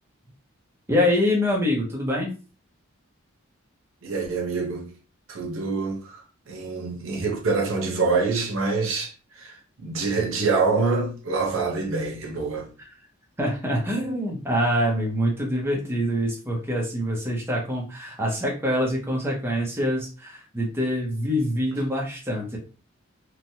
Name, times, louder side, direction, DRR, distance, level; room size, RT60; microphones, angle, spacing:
voice 1, 0.9-2.3 13.4-22.6, equal, 10° right, 0.7 m, -25 dB
voice 2, 4.0-4.9 5.3-12.7, right 4 dB, 80° right, 0.8 m, -26 dB
3.1 x 2.2 x 2.7 m
head